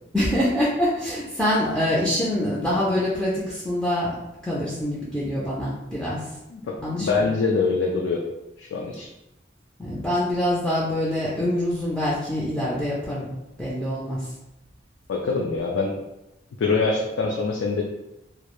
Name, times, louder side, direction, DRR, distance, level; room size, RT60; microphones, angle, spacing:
voice 1, 0.1-4.2 4.4-6.2 6.8-7.3 9.8-13.3 13.6-14.2, left 1 dB, 5° left, -7 dB, 0.3 m, -25 dB
voice 2, 6.5-8.2 8.6-9.1 15.1-15.9 16.6-17.8, left 4 dB, 80° left, 0 dB, 0.3 m, -24 dB
2.2 x 2.0 x 2.9 m, 0.95 s
head